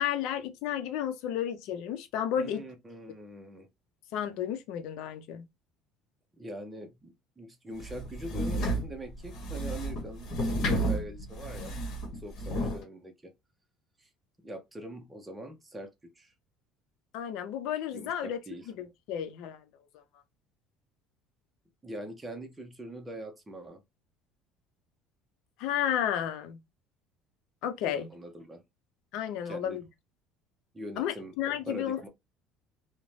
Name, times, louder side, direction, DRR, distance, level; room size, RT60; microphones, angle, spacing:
voice 1, 0.0-2.7 4.1-5.5 17.1-18.4 18.8-19.6 25.6-26.6 27.6-28.1 29.1-29.8 31.0-32.1, left 9 dB, 70° left, 0.6 m, -32 dB
voice 2, 2.4-3.7 6.4-11.8 12.2-13.3 14.0-14.1 14.4-16.3 17.9-18.7 21.8-23.8 27.9-28.6 29.4-29.8 30.7-32.1, right 1 dB, 10° right, 0.6 m, -43 dB
sound 1, 7.8-12.8, right 1 dB, 55° left, 1.2 m, -32 dB
2.6 x 2.1 x 3.1 m
cardioid pair, 145°, 0 cm